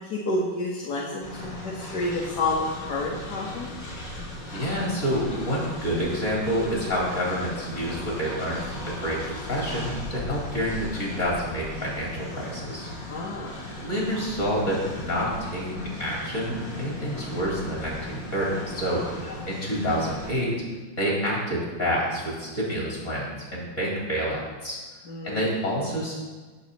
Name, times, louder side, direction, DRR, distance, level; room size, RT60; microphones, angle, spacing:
voice 1, 0.0-3.7 13.1-13.8 19.2-19.4 25.1-25.4, left 2 dB, 60° left, -3 dB, 2.0 m, -30 dB
Train, 1.2-20.3, left 1 dB, 80° left, 3.0 m, -37 dB
voice 2, 4.5-12.9 13.8-19.2 19.5-20.6 21.0-24.8 25.2-26.2, equal, 40° left, -5 dB, 4.4 m, -28 dB
17.5 x 7.6 x 4.2 m, 1.4 s
omnidirectional pair, 2.0 m